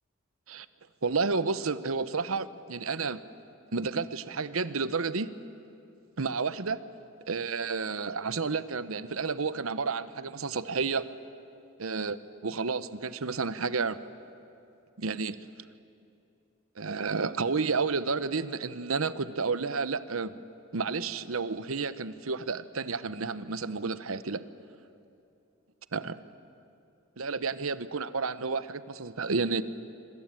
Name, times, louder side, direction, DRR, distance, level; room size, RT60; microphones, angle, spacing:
voice 1, 1.0-3.2 3.7-5.3 6.2-6.8 7.3-11.1 11.8-12.2 12.4-14.0 15.0-15.4 16.8-20.3 20.7-24.4 25.9-26.2 27.2-29.6, right 4 dB, 85° right, 14 dB, 1.0 m, -31 dB
26.0 x 24.5 x 9.1 m, 2.7 s
head